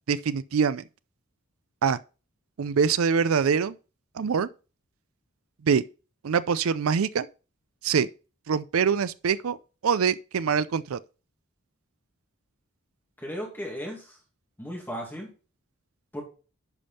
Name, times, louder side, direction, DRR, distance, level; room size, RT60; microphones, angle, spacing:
voice 1, 0.1-0.8 1.8-2.0 2.6-3.8 4.2-4.5 5.6-5.8 6.2-7.3 7.8-8.1 8.5-9.6 9.8-11.0, right 6 dB, 85° right, 0.5 m, -24 dB
voice 2, 13.2-14.2 14.6-15.3 16.1-16.2, equal, 10° left, 2.3 m, -35 dB
11.0 x 5.2 x 4.2 m
head